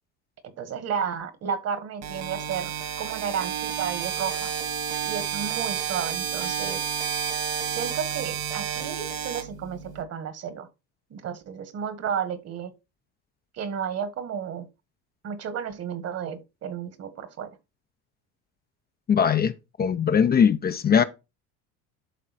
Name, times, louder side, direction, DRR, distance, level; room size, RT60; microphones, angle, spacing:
voice 1, 0.6-4.5 5.0-6.8 7.7-10.7 11.1-12.7 13.5-14.7 15.2-17.5, right 7 dB, 50° right, 1.7 m, -32 dB
sound 1, 2.0-10.0, right 8 dB, 65° right, 2.6 m, -30 dB
voice 2, 19.1-19.5 19.8-21.0, left 7 dB, 30° left, 0.6 m, -20 dB
11.5 x 3.8 x 4.2 m
supercardioid pair, 100°, 33 cm